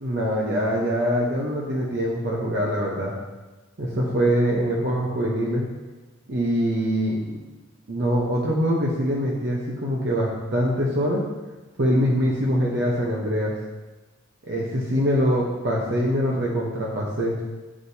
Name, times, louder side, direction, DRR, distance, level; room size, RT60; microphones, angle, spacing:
voice 1, 0.0-3.2 3.8-5.6 6.3-7.4 7.9-11.2 11.8-13.5 14.4-17.4, equal, 55° right, -4 dB, 1.0 m, -23 dB
9.6 x 4.9 x 2.8 m, 1.1 s
head